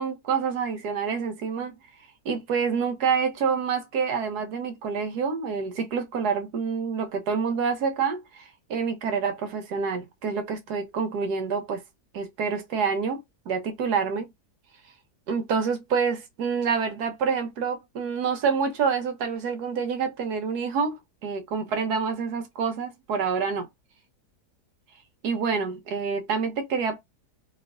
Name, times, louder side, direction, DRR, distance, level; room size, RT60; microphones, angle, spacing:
voice 1, 0.0-1.8 2.2-11.8 12.1-14.3 15.3-23.7 25.2-27.0, right 5 dB, 80° right, 1.4 m, -27 dB
3.1 x 3.0 x 2.5 m
omnidirectional pair, 1.7 m